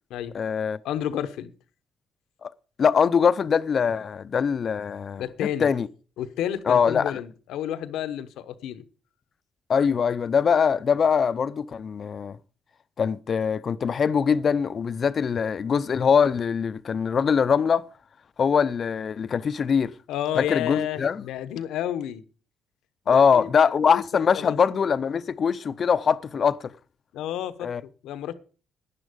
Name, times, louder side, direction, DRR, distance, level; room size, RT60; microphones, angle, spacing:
voice 1, 0.3-0.8 2.4-2.5 2.8-5.9 6.7-7.2 9.7-12.4 13.0-17.9 18.4-19.9 20.4-21.2 23.1-26.7 27.6-27.8, left 6 dB, 50° left, 0.6 m, -22 dB
voice 2, 0.8-1.5 5.2-5.7 6.2-8.8 20.1-22.2 23.1-23.5 23.9-24.6 27.1-28.3, left 11 dB, 85° left, 1.0 m, -31 dB
11.0 x 10.0 x 5.1 m
cardioid pair, 90°, 0 cm